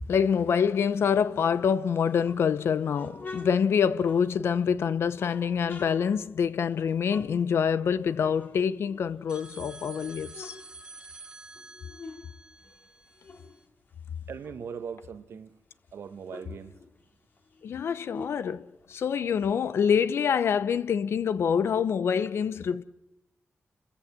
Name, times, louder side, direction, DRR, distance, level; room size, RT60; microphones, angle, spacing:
voice 1, 0.1-10.6 17.6-22.8, left 7 dB, 75° left, 0.8 m, -26 dB
sound 1, 2.0-4.7 5.1-8.0 8.3-9.6 10.0-12.3 12.6-15.1 15.5-15.6 15.8-19.3, left 4 dB, 50° left, 3.1 m, -47 dB
sound 2, 9.3-13.6, right 3 dB, 20° right, 1.7 m, -48 dB
voice 2, 14.3-15.6 15.9-16.7, right 7 dB, 75° right, 1.2 m, -40 dB
29.5 x 14.5 x 7.4 m
wide cardioid pair, 120°, 4 cm